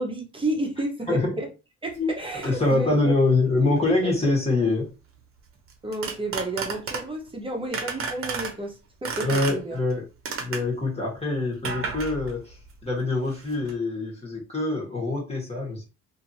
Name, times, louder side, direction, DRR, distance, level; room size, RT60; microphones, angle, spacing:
voice 1, 0.0-1.5 1.8-3.0 4.2-4.3 5.8-9.8, right 1 dB, 15° right, 0.9 m, -31 dB
sound 1, 1.9-2.0 2.4-2.8 3.8-4.1 5.7-7.3 7.7-8.6 9.1-9.9 10.3-10.8 11.6-13.0 13.2-13.7, right 5 dB, 45° right, 0.9 m, -33 dB
voice 2, 2.4-4.9 9.2-10.1 10.4-15.9, left 2 dB, 20° left, 1.4 m, -25 dB
2.7 x 2.7 x 2.7 m
cardioid pair, 90°, 30 cm